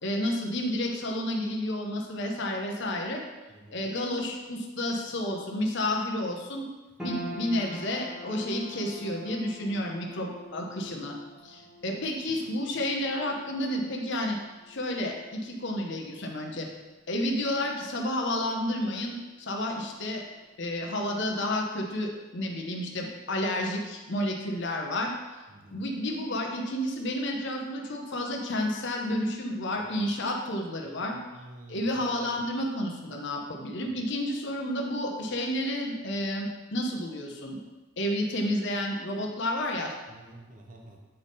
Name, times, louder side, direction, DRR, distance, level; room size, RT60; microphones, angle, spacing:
voice 1, 0.0-3.2 3.7-6.7 7.0-11.2 11.4-14.4 14.7-16.7 17.1-20.2 20.6-25.1 25.7-31.2 31.7-37.6 38.0-39.9, left 1 dB, 60° left, 1 dB, 0.9 m, -31 dB
sound 1, 7.0-19.4 19.7-20.6 21.1-21.2, equal, 5° right, 1.5 m, -46 dB
voice 2, 25.5-25.8 31.3-31.9 40.1-41.0, right 1 dB, 40° right, 1 dB, 0.8 m, -49 dB
7.9 x 3.6 x 4.1 m, 1.2 s
head